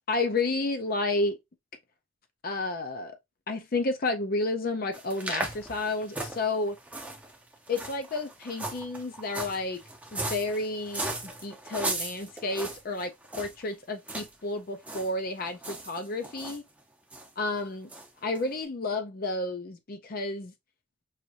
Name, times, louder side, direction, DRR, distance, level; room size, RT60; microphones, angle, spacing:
voice 1, 0.1-1.4 2.4-3.2 3.5-6.8 7.7-9.8 10.1-16.6 17.4-17.9 18.2-20.5, left 2 dB, 45° left, 0.5 m, -31 dB
sound 1, 4.9-13.6 14.1-14.3 14.6-15.1 15.4-16.6 17.1-17.3 17.9-18.1 18.3-18.4, right 2 dB, 5° right, 0.6 m, -37 dB
4.9 x 2.6 x 2.7 m
head